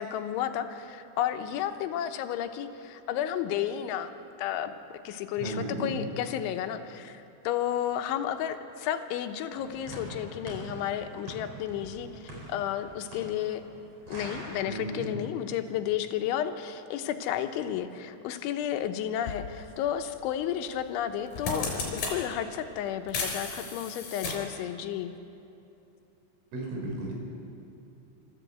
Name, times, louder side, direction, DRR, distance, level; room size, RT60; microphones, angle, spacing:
voice 1, 0.0-4.1 4.4-13.6 14.1-25.1, left 10 dB, 85° left, 7 dB, 3.3 m, -32 dB
voice 2, 5.4-5.9 14.7-15.1 26.5-27.1, right 2 dB, 90° right, 0 dB, 6.4 m, -34 dB
sound 1, 9.5-14.6, right 1 dB, 35° right, 4.7 m, -44 dB
sound 2, 19.2-19.4 20.7-20.9 21.2-22.2 23.1-24.6, left 4 dB, 50° left, 5.4 m, -33 dB
25.5 x 13.5 x 8.1 m, 2.7 s
omnidirectional pair, 5.4 m